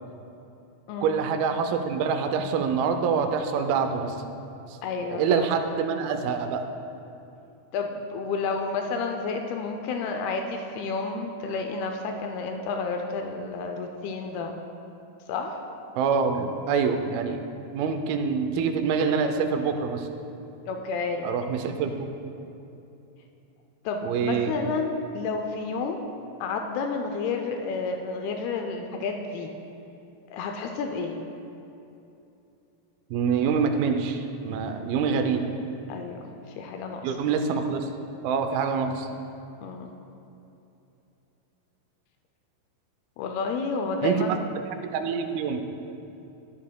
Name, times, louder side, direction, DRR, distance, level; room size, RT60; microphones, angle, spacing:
voice 1, 1.0-4.2 4.7-4.8 5.1-6.6 16.0-17.4 17.7-20.1 21.2-22.1 24.0-24.7 33.1-35.5 37.0-37.9 38.2-39.1 44.0-44.2 44.9-45.7, right 6 dB, 80° right, 6 dB, 2.4 m, -26 dB
voice 2, 4.8-5.7 7.7-14.6 15.3-15.6 20.7-21.3 23.9-26.0 26.4-29.5 30.3-31.2 35.9-37.2 39.6-39.9 43.2-44.5, left 4 dB, 85° left, 4 dB, 2.5 m, -30 dB
12.0 x 11.0 x 2.2 m, 2.8 s
omnidirectional pair, 4.4 m